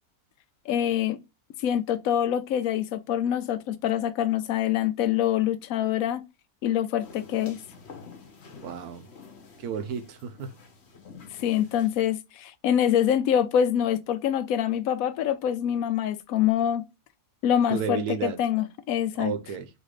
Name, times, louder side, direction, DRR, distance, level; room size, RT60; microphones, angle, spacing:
voice 1, 0.7-1.2 1.6-6.2 6.6-7.6 11.4-16.8 17.4-19.3, left 10 dB, 70° left, 1.0 m, -25 dB
sound 1, 7.0-12.0, left 5 dB, 50° left, 1.2 m, -49 dB
voice 2, 8.6-9.1 9.6-10.5 17.7-18.4 19.2-19.7, right 7 dB, 80° right, 1.3 m, -32 dB
4.0 x 2.7 x 4.8 m
omnidirectional pair, 1.6 m